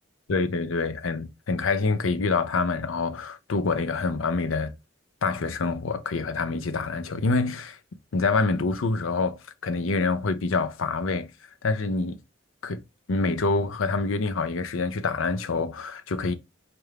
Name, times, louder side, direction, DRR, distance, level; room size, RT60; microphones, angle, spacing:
voice 1, 0.3-4.7 5.2-7.8 8.1-9.4 9.6-11.3 11.6-12.2 12.6-12.8 13.1-16.3, left 3 dB, 75° left, 0.5 m, -26 dB
4.4 x 2.5 x 3.3 m
head